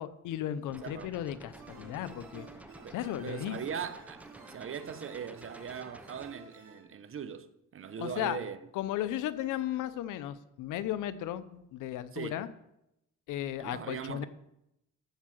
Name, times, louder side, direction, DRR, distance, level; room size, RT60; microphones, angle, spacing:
voice 1, 0.0-2.5 2.9-3.6 8.0-8.4 8.7-12.5 13.3-14.3, left 12 dB, 90° left, 0.8 m, -35 dB
sound 1, 0.7-6.3, right 1 dB, 5° right, 0.9 m, -52 dB
sound 2, 1.5-6.8, right 4 dB, 60° right, 3.8 m, -53 dB
voice 2, 2.8-4.2 4.5-8.6 12.1-12.4 13.6-14.3, right 7 dB, 45° right, 0.9 m, -40 dB
14.0 x 4.7 x 7.7 m
cardioid pair, 90°, 30 cm